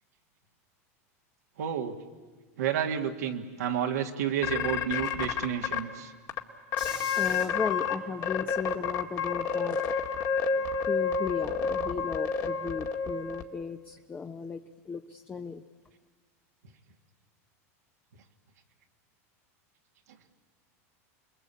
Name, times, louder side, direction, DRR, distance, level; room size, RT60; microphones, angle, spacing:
voice 1, 1.6-2.0 2.6-6.1, right 9 dB, 85° right, 2 dB, 2.1 m, -30 dB
sound 1, 4.4-5.8 6.3-6.4 6.7-7.9 8.2-13.4, left 6 dB, 45° left, 2.1 m, -29 dB
voice 2, 6.8-9.8 10.5-14.6 14.9-15.6, left 5 dB, 20° left, 5 dB, 1.0 m, -36 dB
30.0 x 21.5 x 8.5 m, 1.4 s
hypercardioid pair, 105°, 8 cm